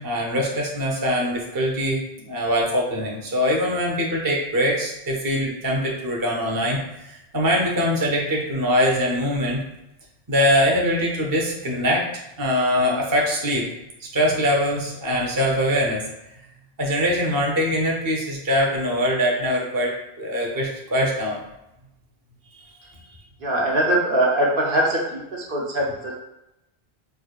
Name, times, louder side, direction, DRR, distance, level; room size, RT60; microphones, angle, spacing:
voice 1, 0.0-9.6 10.3-13.6 14.0-16.1 16.8-21.4, equal, 25° right, -2 dB, 0.5 m, -23 dB
voice 2, 23.4-26.1, right 1 dB, 60° right, -2 dB, 0.8 m, -22 dB
4.9 x 2.2 x 2.3 m, 0.91 s
omnidirectional pair, 1.1 m